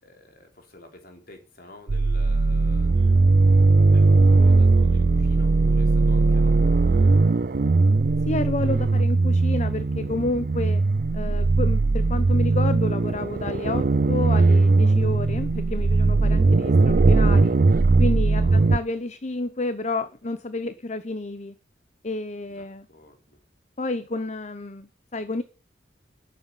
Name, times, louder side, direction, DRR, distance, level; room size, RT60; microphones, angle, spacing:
voice 1, 0.0-7.2 18.3-18.7 22.5-23.4, left 1 dB, 55° left, 4.0 m, -49 dB
sound 1, 1.9-18.8, right 3 dB, 50° right, 0.5 m, -19 dB
voice 2, 8.3-10.8 11.1-17.6 18.0-21.5 22.0-22.9 23.8-25.4, left 2 dB, 40° left, 0.9 m, -30 dB
12.5 x 8.6 x 5.6 m
head